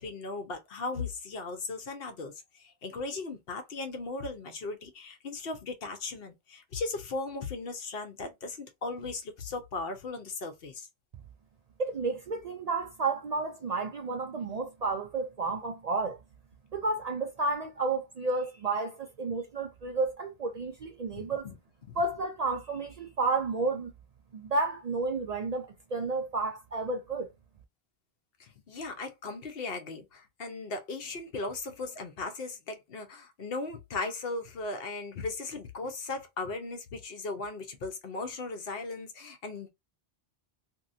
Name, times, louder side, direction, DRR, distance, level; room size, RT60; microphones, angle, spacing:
voice 1, 0.0-10.9 21.1-21.6 21.8-22.0 28.4-39.7, left 3 dB, 70° left, 1.0 m, -37 dB
voice 2, 11.8-16.2 16.7-21.5 22.0-23.9 24.3-27.3, right 3 dB, 55° right, 0.5 m, -31 dB
2.9 x 2.7 x 2.6 m
omnidirectional pair, 1.1 m